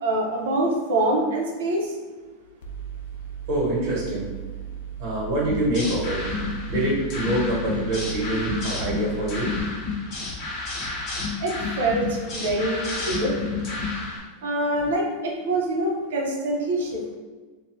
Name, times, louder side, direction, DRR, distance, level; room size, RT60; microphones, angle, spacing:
voice 1, 0.0-1.9 11.4-13.3 14.4-17.2, right 1 dB, 90° right, -1 dB, 0.7 m, -25 dB
Mechanical fan, 2.6-9.6, right 9 dB, 70° left, 0.3 m, -36 dB
voice 2, 3.5-4.3 5.0-6.2 6.7-9.5, right 1 dB, 60° right, -5 dB, 1.3 m, -25 dB
sound 1, 5.5-14.2, left 3 dB, 35° left, 0.8 m, -30 dB
2.6 x 2.3 x 3.1 m, 1.4 s
supercardioid pair, 155°, 0 cm